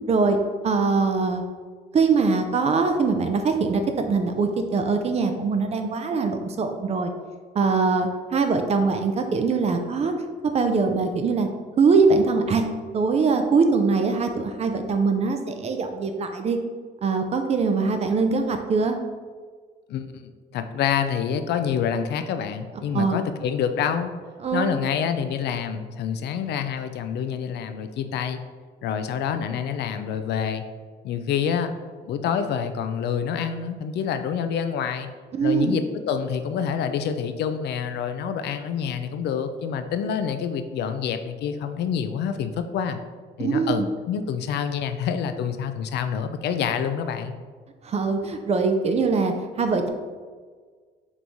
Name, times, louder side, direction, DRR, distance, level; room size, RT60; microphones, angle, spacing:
voice 1, 0.1-0.4 0.6-1.4 1.9-7.1 7.5-10.1 10.4-11.5 11.8-12.6 12.9-16.6 17.0-19.0 22.9-23.2 24.4-24.8 35.3-35.8 43.4-43.8 47.8-49.9, right 4 dB, 35° right, 5 dB, 0.4 m, -22 dB
voice 2, 19.9-24.1 24.5-28.4 28.8-30.6 31.0-31.7 32.0-35.1 35.4-43.0 43.4-47.3, left 7 dB, 70° left, 9 dB, 0.4 m, -27 dB
3.5 x 3.0 x 3.9 m, 1.5 s
cardioid pair, 130°, 18 cm